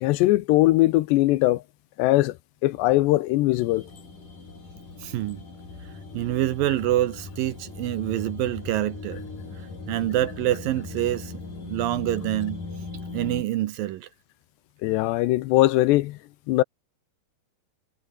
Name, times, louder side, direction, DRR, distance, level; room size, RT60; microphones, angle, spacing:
voice 1, 0.0-1.6 2.0-2.4 2.6-3.8 14.8-16.2 16.5-16.6, left 17 dB, 80° left, 2.9 m, -20 dB
sound 1, 3.6-13.4, left 3 dB, 45° left, 9.3 m, -39 dB
voice 2, 5.0-5.4 6.1-9.2 9.9-11.3 11.6-12.6 13.1-14.1, right 14 dB, 75° right, 2.2 m, -26 dB
omnidirectional pair, 5.1 m